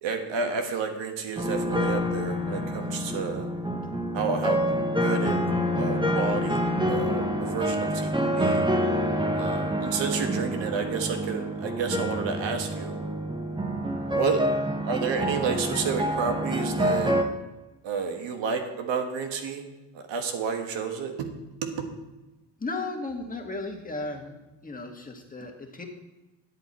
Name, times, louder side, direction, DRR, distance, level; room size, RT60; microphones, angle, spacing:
voice 1, 0.0-3.5 4.1-4.6 5.0-5.4 5.7-6.6 6.9-8.6 9.4-13.0 14.1-14.4 14.8-17.1 17.8-19.6 19.9-21.3 21.6-21.9, right 5 dB, 70° right, 5 dB, 1.4 m, -30 dB
sound 1, 1.4-17.2, equal, 10° right, 1.0 m, -27 dB
voice 2, 22.6-24.4 24.6-25.9, left 3 dB, 20° left, 2 dB, 1.6 m, -35 dB
10.5 x 6.9 x 4.2 m, 1.1 s
supercardioid pair, 80°, 46 cm